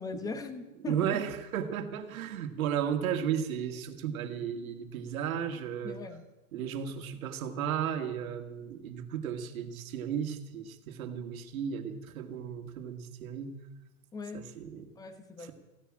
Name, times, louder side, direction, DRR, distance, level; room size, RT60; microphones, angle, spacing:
voice 1, 0.0-1.2 5.8-6.2 6.6-6.7 14.1-14.5 14.9-15.5, left 3 dB, 10° left, 9 dB, 1.0 m, -40 dB
voice 2, 0.9-6.0 6.5-13.5 14.3-14.9, right 8 dB, 70° right, 7 dB, 2.1 m, -34 dB
15.5 x 10.0 x 8.9 m, 1.0 s
supercardioid pair, 155°, 43 cm